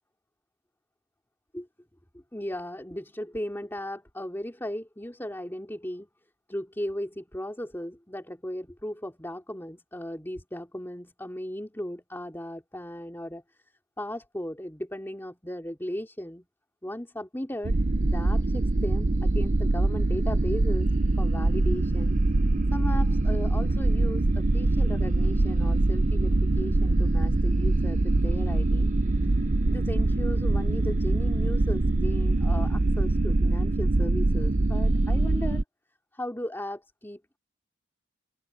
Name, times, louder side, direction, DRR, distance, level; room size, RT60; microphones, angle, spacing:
voice 1, 2.1-6.1 6.5-13.4 14.0-16.5 16.8-17.8 18.1-20.9 21.2-22.2 22.7-28.9 29.7-35.6 36.1-37.4, left 1 dB, 10° left, 3.5 m, -36 dB
sound 1, 17.6-35.6, right 2 dB, 40° right, 0.7 m, -23 dB
open air
head